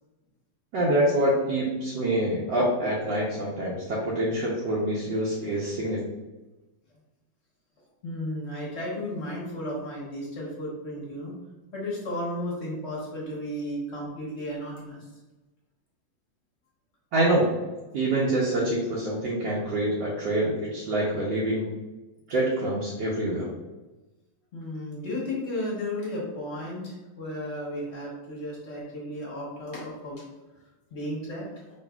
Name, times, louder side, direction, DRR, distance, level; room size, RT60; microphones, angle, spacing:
voice 1, 0.7-6.0 17.1-17.5 17.9-21.7 22.3-23.5, right 1 dB, 70° right, -6 dB, 1.4 m, -26 dB
voice 2, 8.0-11.3 11.7-15.1 24.5-30.2 30.9-31.4, left 1 dB, 50° left, -4 dB, 0.8 m, -34 dB
4.9 x 3.1 x 2.3 m, 1.1 s
omnidirectional pair, 2.2 m